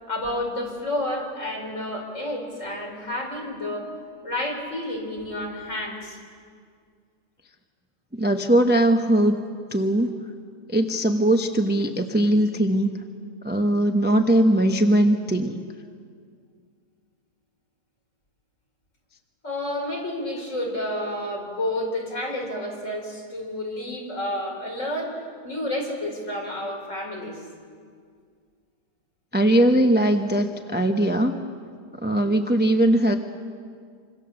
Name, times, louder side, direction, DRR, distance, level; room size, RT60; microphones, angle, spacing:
voice 1, 0.1-3.9 4.2-6.2 19.4-27.4, left 1 dB, 50° left, 0 dB, 4.9 m, -30 dB
voice 2, 8.1-9.4 9.7-10.2 10.7-12.9 13.4-15.6 29.3-31.4 32.0-33.2, right 1 dB, 10° right, 4 dB, 0.8 m, -20 dB
26.5 x 25.5 x 7.2 m, 2.1 s
omnidirectional pair, 1.7 m